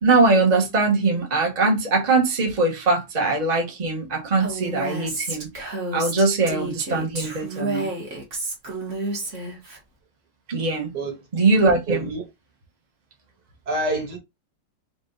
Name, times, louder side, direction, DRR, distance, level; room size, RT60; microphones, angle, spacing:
voice 1, 0.0-5.5 5.9-7.9 10.5-10.9 11.3-12.1, right 3 dB, 25° right, 1.2 m, -21 dB
Female speech woman speaking, 4.4-9.8, right 2 dB, 45° right, 1.8 m, -30 dB
voice 2, 11.9-12.2 13.7-14.2, right 2 dB, 70° right, 2.0 m, -27 dB
3.9 x 3.4 x 3.9 m
omnidirectional pair, 1.8 m